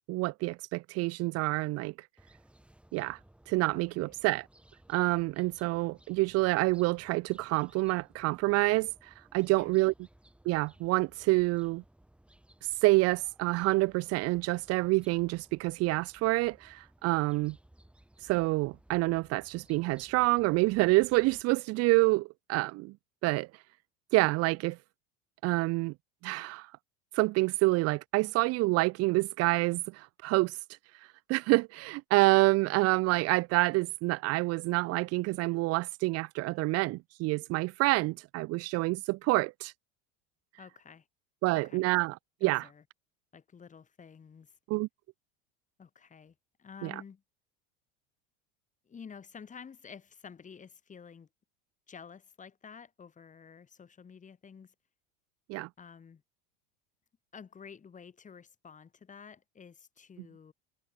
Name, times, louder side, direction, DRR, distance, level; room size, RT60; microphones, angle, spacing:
voice 1, 0.1-1.9 2.9-3.2 3.5-4.5 4.9-9.9 10.5-11.8 12.8-17.5 18.2-22.9 23.2-23.5 24.1-24.8 25.4-25.9 26.2-26.7 27.1-30.6 31.3-39.7 41.4-42.2 42.4-42.7 44.7-44.9 46.8-46.9 55.5-55.7, right 22 dB, 50° right, 0.7 m, -27 dB
sound 1, 2.2-21.4, right 1 dB, 5° right, 7.2 m, -61 dB
voice 2, 3.7-4.2 9.6-9.8 40.6-41.1 41.5-41.8 42.4-42.8 43.3-44.6 45.8-47.2 48.8-51.3 51.9-54.7 55.8-56.2 57.3-60.5, left 6 dB, 25° left, 7.9 m, -51 dB
supercardioid pair, 130°, 32 cm